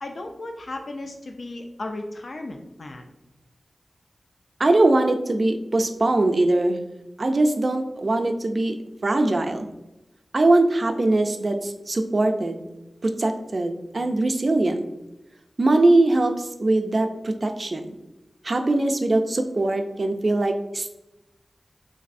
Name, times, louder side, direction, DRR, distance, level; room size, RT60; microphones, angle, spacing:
voice 1, 0.0-3.1, left 2 dB, 65° left, 4 dB, 0.3 m, -35 dB
voice 2, 4.6-6.8 7.2-8.8 9.0-9.7 10.3-12.6 13.0-14.8 15.6-17.9 18.4-20.9, right 2 dB, 50° right, 6 dB, 0.4 m, -21 dB
4.0 x 2.6 x 2.5 m, 0.96 s
wide cardioid pair, 80°, 0 cm